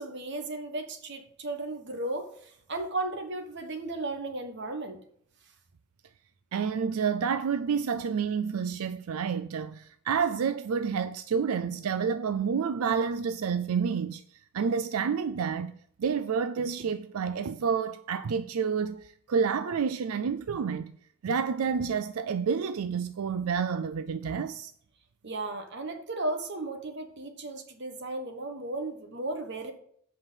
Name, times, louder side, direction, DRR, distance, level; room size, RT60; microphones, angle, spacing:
voice 1, 0.0-5.0 25.2-29.7, right 2 dB, 50° right, 1.3 m, -35 dB
voice 2, 6.5-15.7 16.0-20.9 21.2-24.7, right 6 dB, 80° right, 0.4 m, -29 dB
8.0 x 5.7 x 5.7 m
head